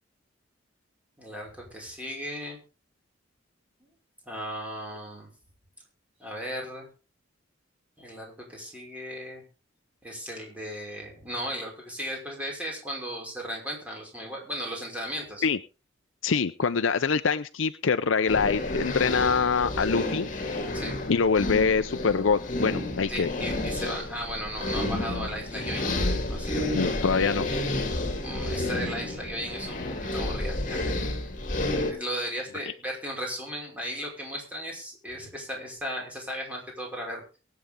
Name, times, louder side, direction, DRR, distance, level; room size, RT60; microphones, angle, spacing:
voice 1, 1.2-2.6 4.3-5.3 6.2-6.9 8.0-9.4 10.0-15.5 20.7-21.0 23.1-25.9 26.3-26.7 28.1-29.8 30.1-31.0 31.7-37.4, equal, 5° right, -1 dB, 5.6 m, -36 dB
voice 2, 16.2-20.3 21.1-23.3 26.7-27.5, left 5 dB, 80° left, 10 dB, 0.6 m, -24 dB
sound 1, 18.3-31.9, left 2 dB, 40° left, 2.7 m, -30 dB
23.5 x 8.6 x 3.7 m, 0.34 s
head